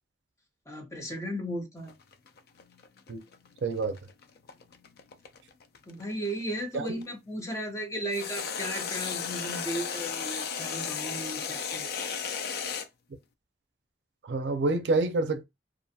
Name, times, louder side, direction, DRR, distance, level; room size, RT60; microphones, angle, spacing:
voice 1, 0.7-1.9 5.9-12.1 12.5-12.7, equal, 15° left, 0.7 m, -36 dB
sound 1, 1.8-7.0 8.1-12.9, left 6 dB, 55° left, 0.4 m, -35 dB
voice 2, 3.6-4.0 6.7-6.9 14.2-15.4, right 3 dB, 70° right, 0.5 m, -27 dB
2.4 x 2.3 x 2.6 m
head